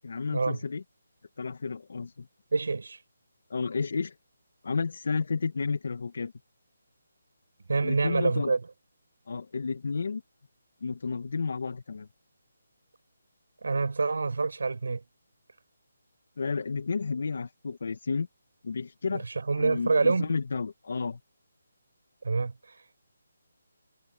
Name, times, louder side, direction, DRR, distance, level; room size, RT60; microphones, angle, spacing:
voice 1, 0.0-0.8 1.4-2.3 3.5-4.1 4.6-6.3 7.8-8.5 9.3-10.2 10.8-12.1 16.4-18.3 18.6-19.2 19.6-21.2, left 4 dB, 65° left, 2.2 m, -31 dB
voice 2, 2.5-3.0 7.7-8.6 13.6-15.0 19.1-20.3 22.2-23.0, right 4 dB, 75° right, 7.6 m, -27 dB
hypercardioid pair, 165°, 0 cm